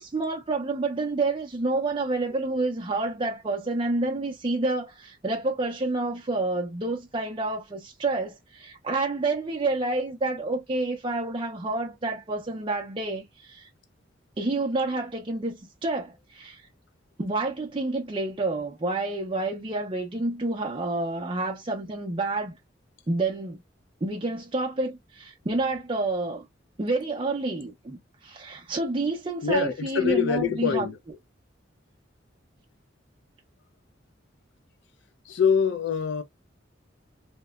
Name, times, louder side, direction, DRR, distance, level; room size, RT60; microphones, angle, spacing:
voice 1, 0.0-13.7 14.4-16.6 17.2-22.5 23.1-23.6 24.0-26.4 26.8-30.9, right 2 dB, 25° right, 0.4 m, -29 dB
voice 2, 29.4-31.0 35.2-36.2, left 6 dB, 65° left, 0.4 m, -24 dB
2.8 x 2.1 x 2.2 m
head